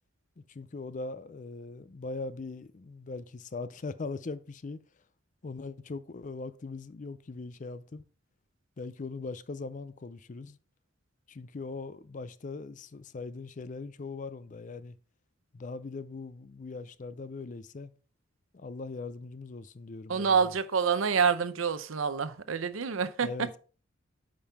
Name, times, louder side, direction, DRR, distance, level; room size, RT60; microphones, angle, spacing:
voice 1, 0.5-4.8 5.4-8.0 8.8-10.6 11.3-15.0 15.5-17.9 18.5-20.5 23.2-23.6, left 3 dB, 40° left, 0.4 m, -40 dB
voice 2, 20.1-23.3, right 6 dB, 85° right, 0.7 m, -27 dB
8.7 x 5.3 x 3.5 m
head